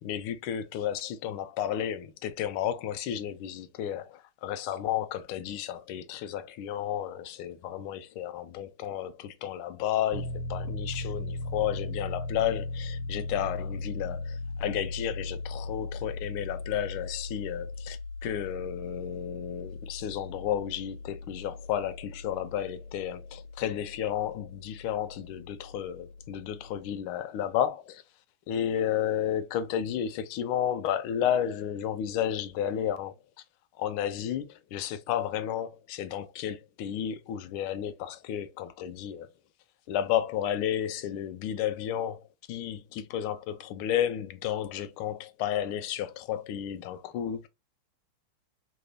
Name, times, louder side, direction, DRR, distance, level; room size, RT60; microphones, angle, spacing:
voice 1, 0.0-28.0 28.5-33.2 33.8-39.3 39.9-47.5, left 10 dB, 80° left, 1.4 m, -32 dB
Piano, 10.1-26.8, left 2 dB, 80° right, 1.4 m, -38 dB
3.9 x 2.6 x 3.1 m
omnidirectional pair, 2.4 m